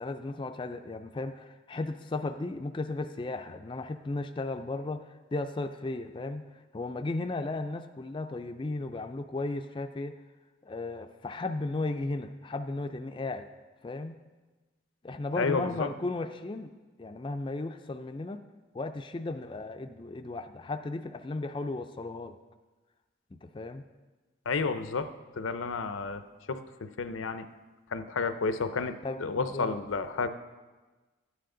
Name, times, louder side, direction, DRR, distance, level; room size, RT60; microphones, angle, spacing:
voice 1, 0.0-10.2 10.6-13.5 13.8-14.1 15.0-16.7 17.0-18.4 18.7-22.4 23.3-23.8 29.0-29.8, left 2 dB, 25° left, 7 dB, 0.3 m, -35 dB
voice 2, 15.4-15.9 24.5-25.1 25.4-26.2 26.5-27.5 27.9-30.3, left 4 dB, 85° left, 10 dB, 0.6 m, -31 dB
12.5 x 9.2 x 3.8 m, 1.3 s
head